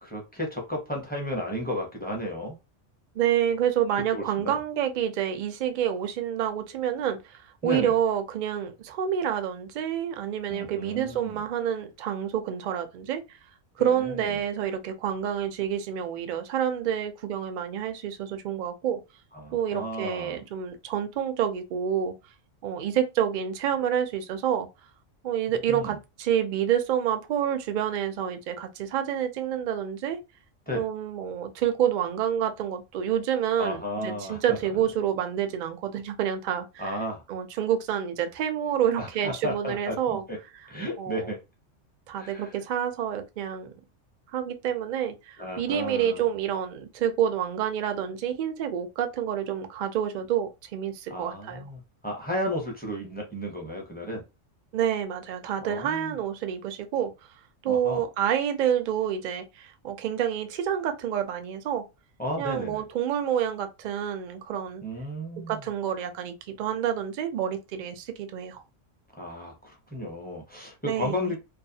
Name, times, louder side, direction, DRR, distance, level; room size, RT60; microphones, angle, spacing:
voice 1, 0.0-2.6 4.1-4.6 7.6-7.9 10.5-11.4 13.8-14.3 19.3-20.4 25.7-26.0 30.7-30.9 33.6-34.6 36.8-37.2 39.0-40.4 40.7-41.4 42.2-42.5 45.4-46.3 51.1-54.2 55.6-56.1 57.7-58.0 62.2-62.8 64.8-65.6 69.1-71.4, equal, 10° left, 0.5 m, -33 dB
voice 2, 3.1-13.2 13.8-19.0 19.5-22.1 22.6-24.7 25.2-30.2 30.7-37.0 37.3-40.2 41.0-41.3 42.1-43.7 44.3-51.7 54.7-57.1 57.6-61.8 62.4-64.8 65.5-68.6 70.9-71.3, right 9 dB, 65° right, 0.5 m, -28 dB
2.4 x 2.3 x 2.6 m
omnidirectional pair, 1.3 m